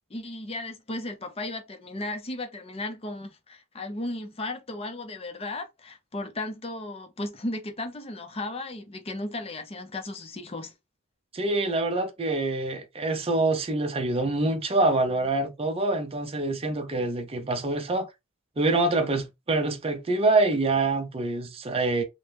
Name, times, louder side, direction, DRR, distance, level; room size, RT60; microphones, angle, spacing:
voice 1, 0.1-10.7, left 2 dB, 30° left, 0.6 m, -35 dB
voice 2, 11.3-18.1 18.6-22.0, right 2 dB, 30° right, 0.6 m, -25 dB
2.8 x 2.1 x 3.3 m
head